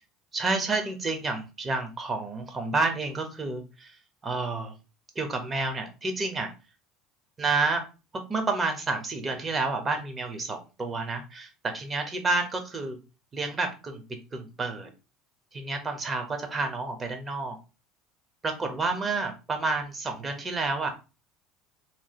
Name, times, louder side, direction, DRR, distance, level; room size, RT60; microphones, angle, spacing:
voice 1, 0.3-3.9 4.2-4.7 5.1-6.5 7.4-7.9 8.1-13.0 13.3-14.0 14.3-14.9 15.5-17.6 18.4-20.9, right 3 dB, 30° right, 4 dB, 1.0 m, -29 dB
3.1 x 2.3 x 2.9 m, 0.30 s
hypercardioid pair, 75°, 0 cm